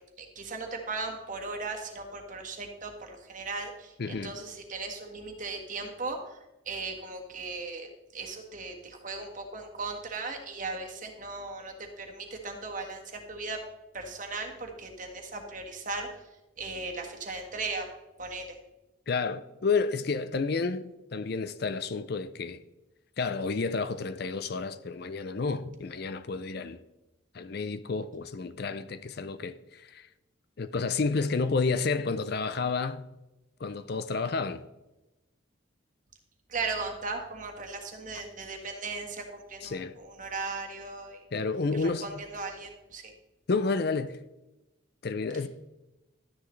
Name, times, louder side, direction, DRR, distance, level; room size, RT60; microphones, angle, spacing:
voice 1, 0.0-6.4 6.6-13.6 13.9-16.1 16.6-17.9 18.2-18.6 36.5-41.2 41.7-43.1, right 3 dB, 40° right, 1.5 m, -37 dB
voice 2, 4.0-4.3 19.1-22.6 23.2-26.8 27.3-30.1 30.6-33.1 33.6-34.6 39.6-39.9 41.3-42.1 43.5-44.2 45.0-45.5, left 4 dB, 50° left, 0.5 m, -30 dB
12.5 x 10.0 x 3.2 m
head